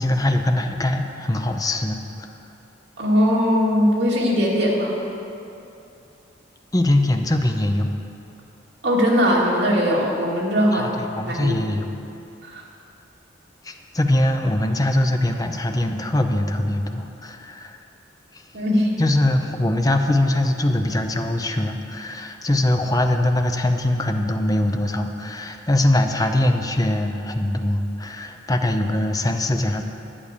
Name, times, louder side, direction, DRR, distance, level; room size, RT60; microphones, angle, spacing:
voice 1, 0.0-2.3 6.7-7.9 10.7-11.9 13.6-17.8 18.3-18.4 19.0-29.8, left 1 dB, 20° left, 5 dB, 0.7 m, -22 dB
voice 2, 3.0-5.0 8.8-11.0 11.3-11.7 12.4-12.6 18.5-18.9, equal, 65° right, -4 dB, 2.5 m, -20 dB
11.0 x 8.7 x 6.8 m, 2.7 s
head